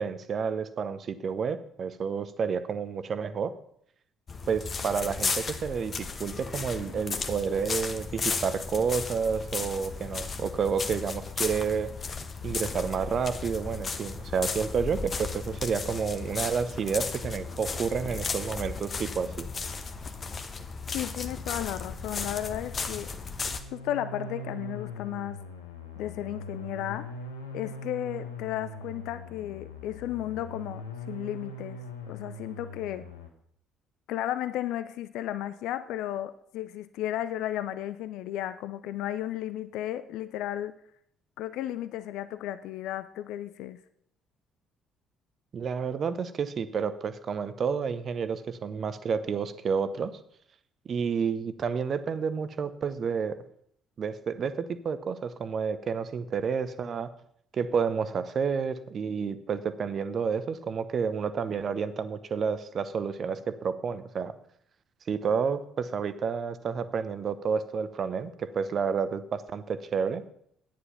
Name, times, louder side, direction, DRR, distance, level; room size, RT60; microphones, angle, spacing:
voice 1, 0.0-3.5 4.5-11.9 12.4-19.5 45.5-50.2 50.8-53.4 54.0-57.1 57.5-64.4 65.1-70.2, right 6 dB, 45° right, 13 dB, 0.8 m, -30 dB
sound 1, 4.3-23.6, left 4 dB, 35° left, 1.1 m, -35 dB
voice 2, 20.9-23.1 23.7-25.4 26.0-27.1 27.5-33.1 34.1-40.8 41.4-43.8, left 12 dB, 60° left, 14 dB, 0.5 m, -34 dB
sound 2, 23.3-33.3, left 2 dB, 85° left, 1.1 m, -41 dB
10.5 x 9.6 x 5.6 m, 0.68 s
figure-of-eight pair, 50°, 0 cm